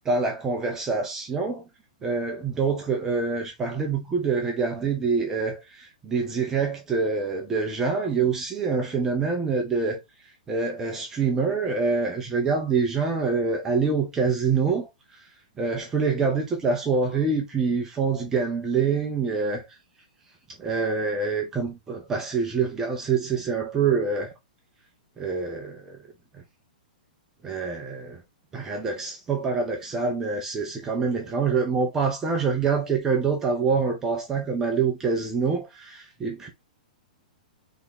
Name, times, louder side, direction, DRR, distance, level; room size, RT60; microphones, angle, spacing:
voice 1, 0.0-1.7 2.0-15.3 15.6-19.8 20.6-24.3 25.2-26.0 26.3-26.4 27.4-28.2 28.5-36.5, right 5 dB, 10° right, 0.5 m, -26 dB
3.5 x 3.4 x 4.0 m
hypercardioid pair, 170°, 5 cm